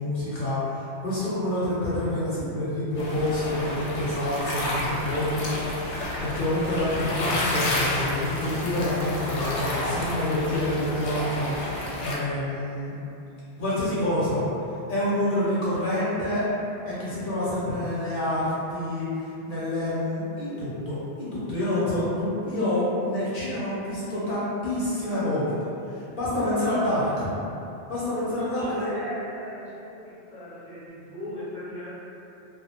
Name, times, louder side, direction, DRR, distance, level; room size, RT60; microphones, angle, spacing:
voice 1, 0.0-13.0 13.6-14.4 14.9-16.4 16.9-25.5 25.9-27.3 27.9-28.9, left 1 dB, 60° left, -9 dB, 0.6 m, -27 dB
sound 1, 3.0-12.1, left 1 dB, 85° left, 0.9 m, -30 dB
voice 2, 28.5-31.9, left 1 dB, 10° right, -12 dB, 0.5 m, -38 dB
2.4 x 2.0 x 2.7 m, 2.8 s
omnidirectional pair, 1.1 m